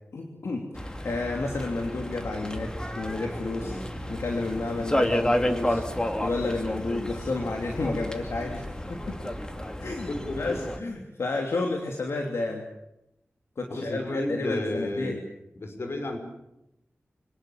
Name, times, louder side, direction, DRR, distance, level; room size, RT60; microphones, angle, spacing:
voice 1, 0.1-3.8 4.1-5.8 6.2-8.6 8.9-9.2 9.8-12.6 13.6-15.2, left 3 dB, 80° left, 2 dB, 3.0 m, -31 dB
sound 1, 0.8-10.8, left 1 dB, 15° left, 2.4 m, -31 dB
voice 2, 10.1-11.0 13.7-15.2 15.6-16.2, left 1 dB, 65° left, 5 dB, 5.4 m, -32 dB
26.0 x 18.5 x 8.8 m, 0.87 s
wide cardioid pair, 85°, 4 cm